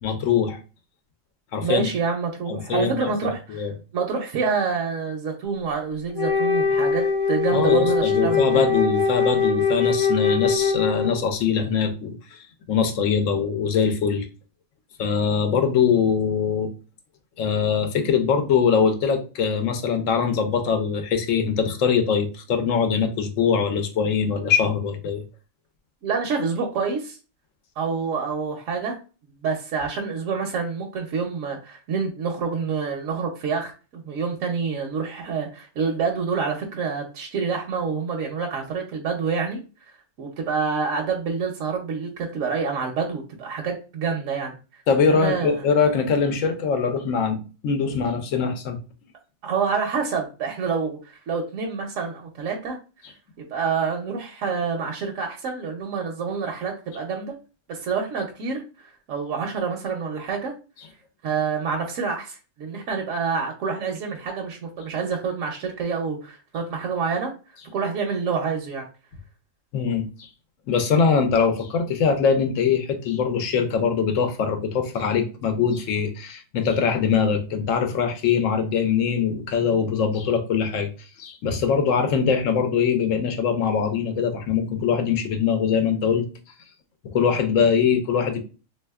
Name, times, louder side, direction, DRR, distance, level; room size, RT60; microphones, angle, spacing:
voice 1, 0.0-0.6 1.5-1.9 2.7-3.1 3.5-3.7 7.5-12.4 12.7-14.2 15.0-16.7 17.4-25.2 44.9-47.4 47.6-48.8 69.7-70.3 70.7-80.9 81.2-86.2 87.0-88.4, left 6 dB, 70° left, 6 dB, 1.0 m, -22 dB
voice 2, 1.6-3.7 3.9-8.7 26.0-27.2 27.8-29.0 29.4-39.6 40.2-44.8 45.1-45.6 49.4-52.8 53.4-57.3 57.7-60.5 61.2-67.3 67.7-68.8, right 5 dB, 75° right, 2 dB, 1.0 m, -27 dB
Wind instrument woodwind instrument, 6.1-11.3, left 5 dB, 35° left, 0.6 m, -22 dB
3.4 x 2.7 x 2.2 m, 0.33 s
omnidirectional pair, 1.4 m